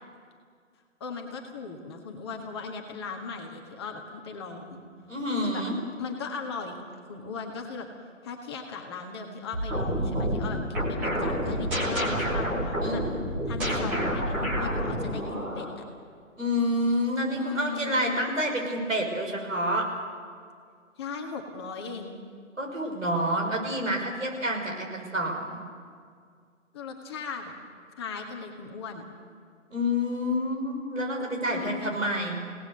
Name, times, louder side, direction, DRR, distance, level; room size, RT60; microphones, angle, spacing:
voice 1, 1.0-4.8 5.3-5.6 6.0-7.9 8.2-13.0 13.5-15.8 17.3-18.2 21.0-22.2 26.7-27.5 28.0-29.0 31.5-32.1, left 5 dB, 20° left, 2 dB, 1.6 m, -37 dB
voice 2, 5.1-5.8 12.8-13.2 16.4-19.9 22.6-25.6 29.7-32.4, equal, 75° right, 1 dB, 5.9 m, -28 dB
sound 1, 9.5-15.7, equal, 5° right, 0.8 m, -28 dB
28.5 x 18.0 x 6.7 m, 2.1 s
figure-of-eight pair, 150°, 39 cm